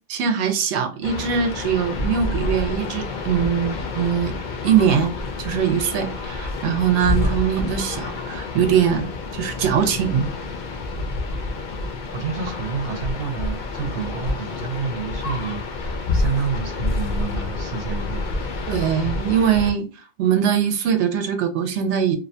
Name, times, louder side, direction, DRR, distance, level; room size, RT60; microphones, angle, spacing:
voice 1, 0.1-4.3 4.6-10.3 18.7-19.9 20.2-22.2, right 8 dB, 90° right, 0.9 m, -22 dB
sound 1, 1.0-19.7, left 3 dB, 60° left, 0.5 m, -28 dB
voice 2, 7.2-7.6 12.1-18.2, right 5 dB, 65° right, 0.8 m, -29 dB
2.5 x 2.2 x 2.6 m
omnidirectional pair, 1.1 m